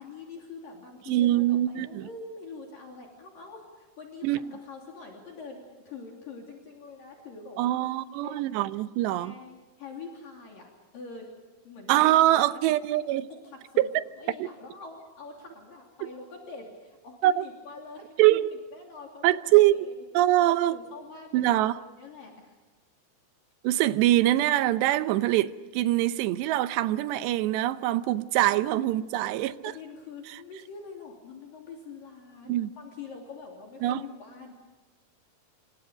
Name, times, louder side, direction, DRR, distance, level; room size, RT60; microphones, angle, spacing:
voice 1, 0.0-7.8 8.2-8.6 9.1-11.3 11.6-12.2 13.3-13.9 14.2-18.1 18.7-19.9 20.6-22.6 28.5-28.9 29.7-34.5, left 4 dB, 55° left, 4.6 m, -45 dB
voice 2, 1.1-2.1 4.2-4.4 7.6-9.3 11.9-13.3 13.9-14.0 14.4-14.5 16.0-16.1 17.2-17.5 18.2-18.6 19.2-19.8 20.1-20.8 21.3-21.8 23.6-29.7 32.5-32.7 33.8-34.0, right 14 dB, 90° right, 3.1 m, -23 dB
28.5 x 25.0 x 5.2 m
omnidirectional pair, 4.8 m